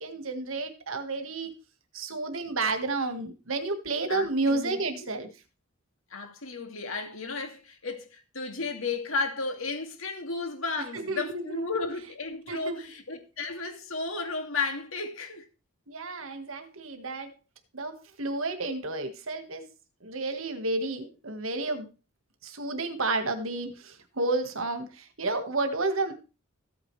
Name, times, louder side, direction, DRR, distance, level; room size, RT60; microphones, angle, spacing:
voice 1, 0.0-1.5 1.9-5.3 10.9-11.6 12.5-12.8 15.9-17.3 17.7-19.7 20.0-21.9 22.4-26.1, right 3 dB, 75° right, 1.7 m, -31 dB
voice 2, 4.1-5.1 6.1-15.5, left 4 dB, 80° left, 2.4 m, -34 dB
14.5 x 8.9 x 3.3 m
head